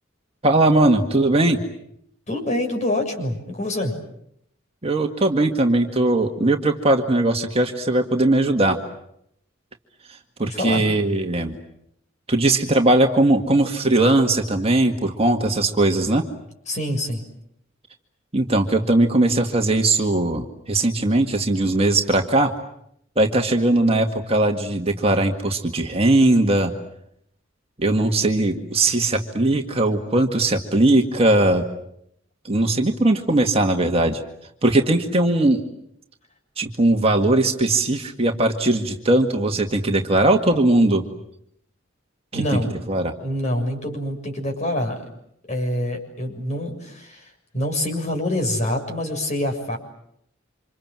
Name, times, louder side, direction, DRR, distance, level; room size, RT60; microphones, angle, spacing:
voice 1, 0.4-1.6 4.8-8.8 10.4-11.6 12.3-16.2 18.3-22.5 23.2-26.7 27.8-31.7 32.4-34.2 34.6-35.6 36.6-41.0 42.3-42.6 42.9-43.1, right 2 dB, 30° right, 3 dB, 2.0 m, -19 dB
voice 2, 2.3-3.9 10.4-10.8 16.7-17.2 42.3-42.7 43.2-45.0 45.5-49.8, left 1 dB, 35° left, 3 dB, 6.8 m, -26 dB
29.0 x 27.0 x 7.6 m, 0.74 s
head